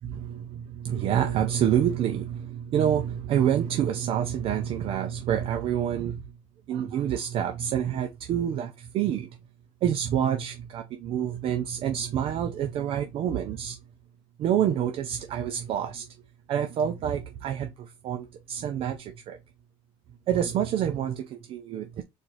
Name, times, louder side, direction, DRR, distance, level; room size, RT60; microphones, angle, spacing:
voice 1, 0.0-6.2 6.7-9.3 9.8-13.8 14.4-16.1 16.5-19.4 20.3-22.0, right 9 dB, 50° right, 0.6 m, -27 dB
4.4 x 2.6 x 4.4 m
cardioid pair, 155°, 12 cm